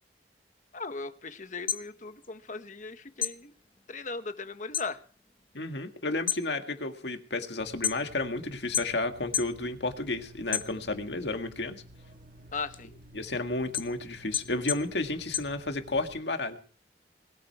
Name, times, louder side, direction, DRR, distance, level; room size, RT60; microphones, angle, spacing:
voice 1, 0.7-3.5 3.9-5.0 12.5-12.9, left 4 dB, 45° left, 9 dB, 1.2 m, -38 dB
sound 1, 1.5-2.9 3.2-4.9 5.3-5.7 6.1-8.3 8.7-9.6 10.0-11.2 11.6-16.1, left 9 dB, 30° left, 0.8 m, -34 dB
voice 2, 5.5-11.8 13.1-16.6, left 2 dB, 75° left, 6 dB, 1.9 m, -32 dB
sound 2, 7.6-16.2, right 1 dB, 50° right, 1.6 m, -52 dB
21.0 x 13.5 x 4.7 m, 0.43 s
head